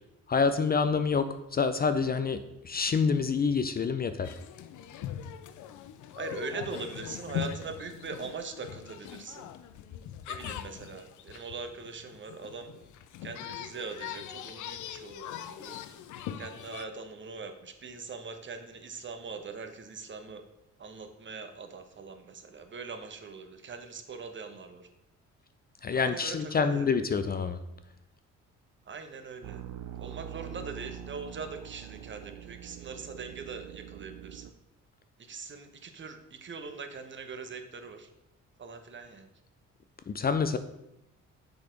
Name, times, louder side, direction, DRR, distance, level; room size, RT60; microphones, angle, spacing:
voice 1, 0.3-2.4 2.6-4.4 25.8-27.6 40.1-40.6, left 5 dB, 30° left, 10 dB, 0.5 m, -27 dB
sound 1, 4.2-16.9, left 10 dB, 80° left, 0.6 m, -41 dB
voice 2, 6.1-9.5 10.3-12.7 13.2-15.8 16.4-20.4 20.8-24.9 25.9-26.9 28.9-29.6 30.0-34.5 35.2-38.1 38.6-39.3, right 4 dB, 40° right, 7 dB, 0.9 m, -41 dB
sound 2, 29.4-34.5, right 11 dB, 80° right, 0.5 m, -44 dB
6.8 x 4.2 x 5.0 m, 0.86 s
cardioid pair, 90°, 30 cm